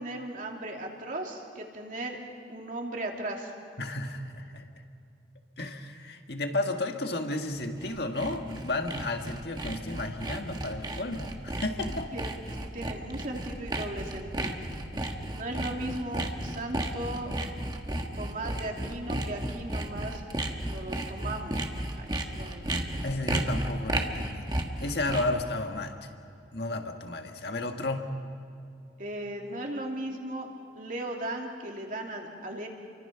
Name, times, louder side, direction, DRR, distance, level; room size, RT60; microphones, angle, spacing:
voice 1, 0.0-2.2 2.5-3.5 12.1-14.6 15.3-17.3 18.1-20.2 20.6-21.7 21.9-23.0 29.0-30.5 30.7-32.7, right 1 dB, 45° right, 1 dB, 2.9 m, -37 dB
voice 2, 3.8-4.7 5.6-12.1 23.0-26.1 26.5-28.1, left 2 dB, 65° left, 4 dB, 1.8 m, -33 dB
Sawing, 7.6-25.4, right 1 dB, 25° right, 1.5 m, -34 dB
29.0 x 24.5 x 5.9 m, 2.5 s
head